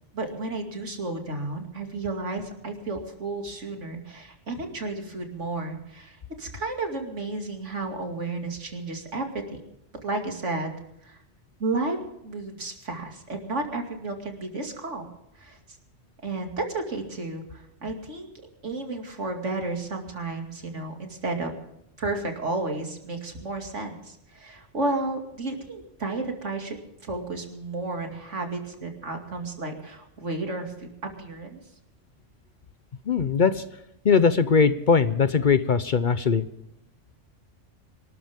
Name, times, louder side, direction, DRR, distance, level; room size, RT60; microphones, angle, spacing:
voice 1, 0.1-9.6 10.0-10.8 11.0-11.2 11.6-12.0 12.2-15.1 15.4-15.6 16.2-18.3 18.6-21.5 22.0-30.9 31.2-31.6, right 2 dB, 80° right, 3 dB, 2.8 m, -32 dB
voice 2, 33.1-33.6 34.0-36.5, left 5 dB, 50° left, 13 dB, 0.8 m, -20 dB
26.0 x 13.0 x 3.6 m, 0.83 s
omnidirectional pair, 1.2 m